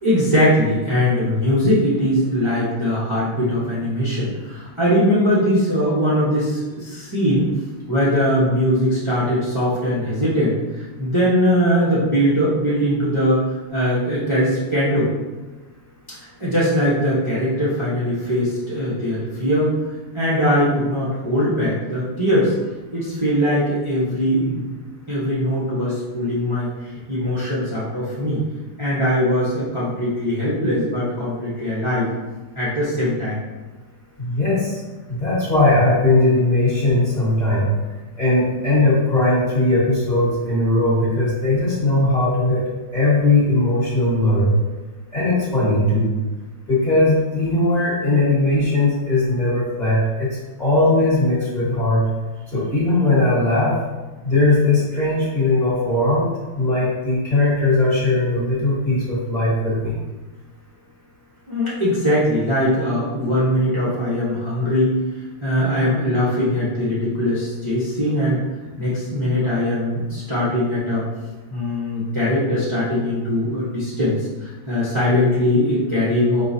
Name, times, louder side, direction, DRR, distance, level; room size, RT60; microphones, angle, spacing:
voice 1, 0.0-15.1 16.1-19.8 20.1-22.5 22.9-24.6 25.1-28.4 28.8-32.1 32.5-33.4 61.5-65.0 65.4-68.4 68.8-71.0 71.5-76.4, equal, 40° right, -10 dB, 0.4 m, -21 dB
voice 2, 34.2-34.8 35.1-37.7 38.2-42.6 42.9-44.5 45.1-46.1 46.7-52.0 52.5-53.7 54.2-56.3 56.5-59.9, left 2 dB, 25° left, -8 dB, 1.1 m, -19 dB
4.7 x 3.8 x 2.7 m, 1.2 s
omnidirectional pair, 2.4 m